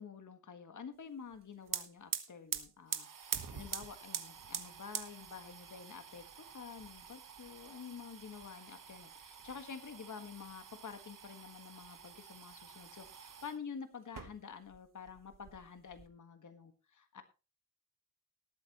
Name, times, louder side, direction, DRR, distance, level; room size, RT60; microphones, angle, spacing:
voice 1, 0.0-17.2, left 6 dB, 70° left, 8 dB, 1.7 m, -49 dB
sound 1, 1.3-1.4 1.6-13.6 14.0-14.8 15.1-16.1, right 7 dB, 85° right, 1.3 m, -45 dB
19.5 x 8.7 x 3.0 m, 0.31 s
cardioid pair, 55°, 31 cm